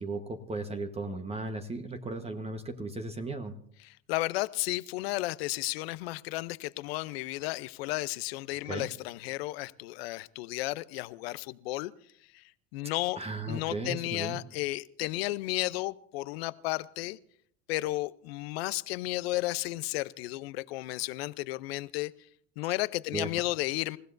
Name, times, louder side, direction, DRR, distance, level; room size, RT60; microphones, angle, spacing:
voice 1, 0.0-3.6 8.6-8.9 13.2-14.4 23.1-23.3, right 2 dB, 20° right, 6 dB, 1.2 m, -36 dB
voice 2, 3.8-11.9 12.3-12.4 12.7-13.2 13.5-17.2 17.7-22.1 22.6-24.0, left 19 dB, 80° left, 17 dB, 0.7 m, -33 dB
28.0 x 15.5 x 2.6 m, 0.65 s
supercardioid pair, 100°, 30 cm